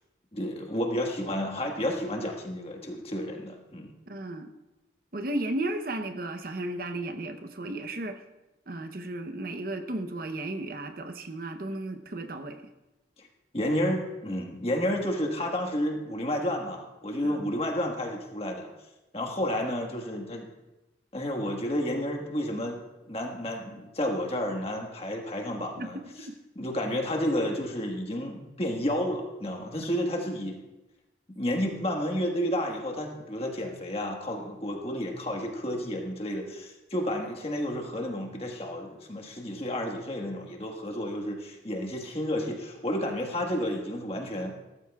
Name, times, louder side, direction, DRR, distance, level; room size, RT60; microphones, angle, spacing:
voice 1, 0.3-3.9 13.2-13.3 13.5-18.7 19.1-20.5 21.1-22.8 23.1-26.0 26.5-30.6 31.3-44.6, equal, 30° left, 2 dB, 1.5 m, -31 dB
voice 2, 4.1-4.5 5.1-8.2 8.7-12.6 17.2-17.4 25.8-25.9, right 1 dB, 50° right, 7 dB, 0.8 m, -34 dB
17.0 x 14.0 x 2.4 m, 1.0 s
head